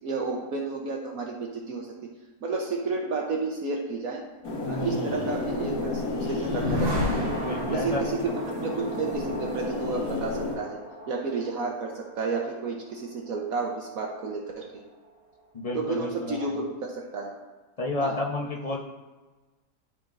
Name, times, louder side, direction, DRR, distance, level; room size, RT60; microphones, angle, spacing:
voice 1, 0.0-1.9 2.4-4.2 4.7-6.0 6.3-7.3 7.7-8.3 8.6-10.8 11.1-14.8 15.7-17.4 18.0-18.2, right 4 dB, 65° right, 0 dB, 1.2 m, -31 dB
sound 1, 4.4-10.6, left 2 dB, 65° left, 1.7 m, -31 dB
voice 2, 4.6-5.2 7.1-8.2 15.5-16.6 17.8-18.8, left 2 dB, 35° left, -1 dB, 0.6 m, -32 dB
sound 2, 5.9-15.4, right 1 dB, 85° right, 2.0 m, -38 dB
12.5 x 4.3 x 2.5 m, 1.2 s
omnidirectional pair, 1.7 m